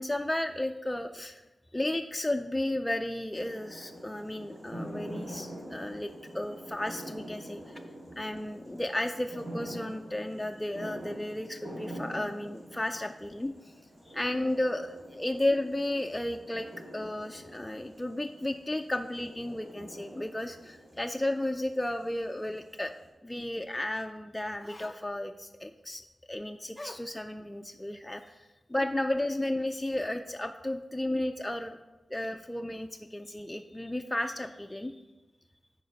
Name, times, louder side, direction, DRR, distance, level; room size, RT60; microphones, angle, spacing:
voice 1, 0.0-1.4 1.7-7.8 8.2-13.7 14.1-16.7 16.9-22.9 23.2-26.0 26.3-31.8 32.1-35.0, left 1 dB, 10° left, 5 dB, 0.3 m, -33 dB
sound 1, 3.3-23.1, equal, 80° right, 2.3 m, -46 dB
8.6 x 5.0 x 3.9 m, 1.1 s
wide cardioid pair, 95°, 0 cm